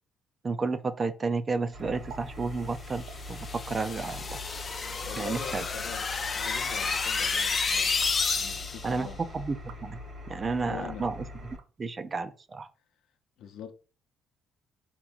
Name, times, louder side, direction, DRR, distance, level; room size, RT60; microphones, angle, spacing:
voice 1, 0.4-4.4 5.2-5.6 8.8-9.1 9.3-10.0 10.3-11.2 11.8-12.7, right 4 dB, 25° right, 0.4 m, -31 dB
sound 1, 1.0-1.1 1.4-1.5 1.9-2.2 3.0-3.2 3.9-4.2 5.2-5.4 6.4-6.8 7.8-8.2 8.8-9.1 9.6-9.8 10.5-10.7 11.4-12.1, right 7 dB, 85° right, 0.6 m, -51 dB
Engine, 1.7-11.6, left 2 dB, 50° right, 1.3 m, -43 dB
sound 2, 2.9-8.9, left 4 dB, 30° left, 0.5 m, -30 dB
voice 2, 5.0-8.1 8.4-9.2 10.6-11.1 13.4-13.7, left 7 dB, 75° left, 0.7 m, -43 dB
4.5 x 3.0 x 3.9 m
cardioid pair, 145°, 0 cm